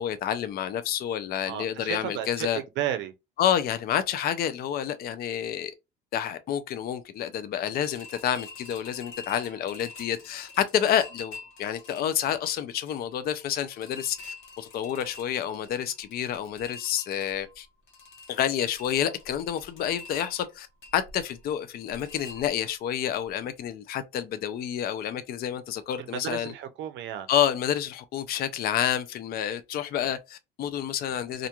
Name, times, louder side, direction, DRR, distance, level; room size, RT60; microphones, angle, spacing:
voice 1, 0.0-2.6 3.4-5.7 6.1-17.7 18.3-20.7 20.9-26.5 27.3-31.5, left 10 dB, 50° left, 0.4 m, -29 dB
voice 2, 1.5-3.1 26.1-27.3, right 11 dB, 65° right, 0.5 m, -33 dB
sound 1, 7.7-22.9 23.3-23.4 23.7-23.8, left 3 dB, 80° left, 1.0 m, -47 dB
2.4 x 2.2 x 2.8 m
cardioid pair, 135°, 20 cm